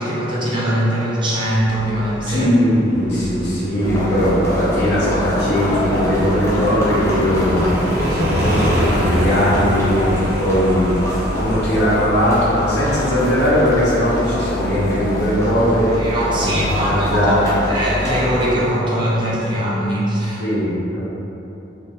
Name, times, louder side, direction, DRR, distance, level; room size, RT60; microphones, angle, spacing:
voice 1, 0.0-2.5 16.0-17.4 17.7-20.4, equal, 25° right, -7 dB, 0.6 m, -21 dB
Motorcycle, 1.5-15.8, equal, 60° right, 0.6 m, -28 dB
voice 2, 2.3-11.0 11.3-15.9 16.3-17.5 20.4-21.0, equal, 70° left, -9 dB, 1.2 m, -19 dB
ambience railway station city Voronezh, 3.8-18.5, left 1 dB, 15° left, 0.6 m, -24 dB
3.6 x 2.7 x 3.9 m, 3.0 s
head